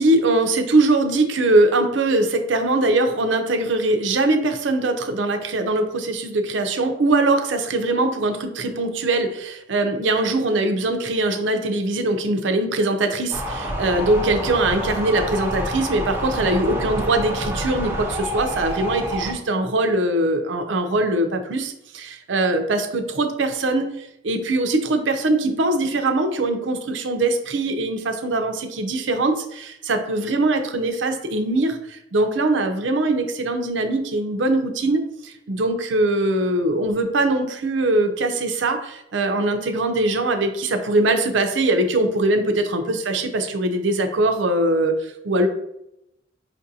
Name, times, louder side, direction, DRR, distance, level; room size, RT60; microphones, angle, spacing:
voice 1, 0.0-45.5, right 2 dB, 75° right, 5 dB, 0.6 m, -22 dB
sound 1, 13.3-19.3, equal, 10° right, 0.4 m, -28 dB
5.1 x 2.5 x 2.7 m, 0.82 s
head